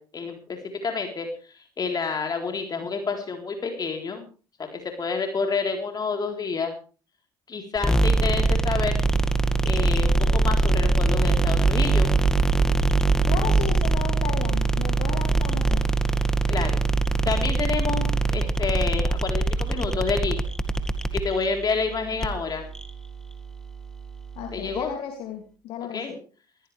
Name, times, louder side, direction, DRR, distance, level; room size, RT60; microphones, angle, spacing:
voice 1, 0.0-4.3 4.7-6.7 7.5-9.0 9.6-12.1 16.5-16.8 17.2-20.4 21.1-22.6 24.5-24.9 25.9-26.1, left 4 dB, 40° left, 3 dB, 4.0 m, -29 dB
sound 1, 7.8-24.8, right 2 dB, 5° left, 2.0 m, -23 dB
voice 2, 13.3-15.9 24.4-26.2, left 8 dB, 70° left, 3 dB, 2.7 m, -34 dB
21.0 x 15.5 x 3.4 m, 0.37 s
hypercardioid pair, 60°, 10 cm